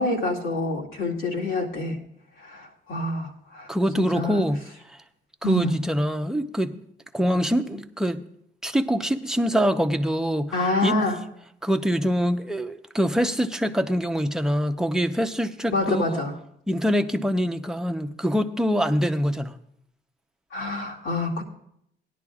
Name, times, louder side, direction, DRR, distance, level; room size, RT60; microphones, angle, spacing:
voice 1, 0.0-2.0 2.4-4.4 5.4-5.8 7.7-7.8 10.5-11.2 15.7-16.4 20.5-21.4, left 2 dB, 85° left, 2.3 m, -27 dB
voice 2, 3.7-5.0 5.4-6.7 7.1-8.2 8.6-11.0 11.6-16.2 16.7-19.6, equal, 5° right, 0.7 m, -24 dB
17.5 x 10.5 x 2.4 m
cardioid pair, 90°, 20 cm